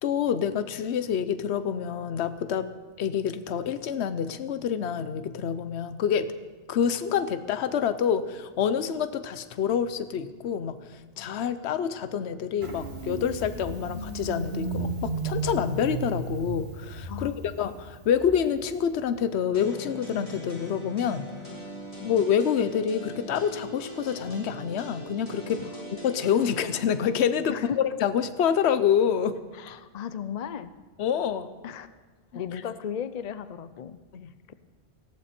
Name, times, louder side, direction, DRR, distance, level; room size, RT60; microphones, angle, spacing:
voice 1, 0.0-2.7 3.0-6.3 6.7-10.8 11.2-21.3 22.0-25.6 25.9-29.3 31.0-31.5 34.1-34.3, left 8 dB, 70° left, 12 dB, 1.0 m, -27 dB
Engine starting, 12.6-19.1, right 3 dB, 60° right, 2.0 m, -34 dB
voice 2, 17.1-17.4 22.0-22.1 25.6-25.7 27.5-27.8 29.5-30.7 31.6-31.9 32.3-34.0, left 8 dB, 50° left, 13 dB, 0.5 m, -36 dB
sound 1, 19.5-27.2, equal, 30° left, 3.8 m, -41 dB
19.0 x 14.5 x 4.4 m, 1.4 s
omnidirectional pair, 1.2 m